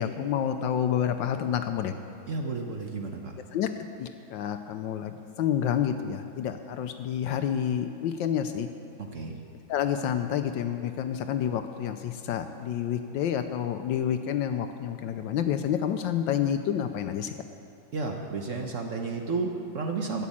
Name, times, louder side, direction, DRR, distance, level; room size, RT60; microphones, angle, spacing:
voice 1, 0.0-1.9 3.5-3.7 4.0-8.7 9.7-17.3, left 9 dB, 75° left, 8 dB, 1.2 m, -29 dB
voice 2, 2.3-3.3 9.0-9.4 17.9-20.3, right 4 dB, 50° right, 2 dB, 1.0 m, -32 dB
12.5 x 7.3 x 8.5 m, 2.4 s
omnidirectional pair, 2.2 m